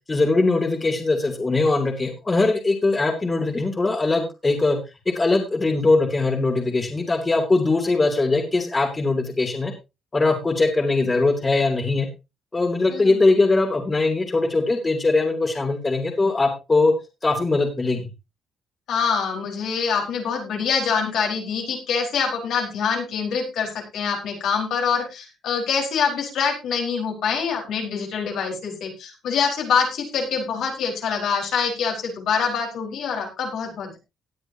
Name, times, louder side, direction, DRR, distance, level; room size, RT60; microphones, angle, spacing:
voice 1, 0.1-4.8 5.1-9.7 10.1-12.1 12.5-16.9 17.2-18.1, left 3 dB, 25° left, 3 dB, 2.9 m, -21 dB
voice 2, 18.9-34.0, left 6 dB, 75° left, 1 dB, 4.5 m, -25 dB
18.0 x 8.8 x 2.8 m, 0.26 s
cardioid pair, 90°, 0 cm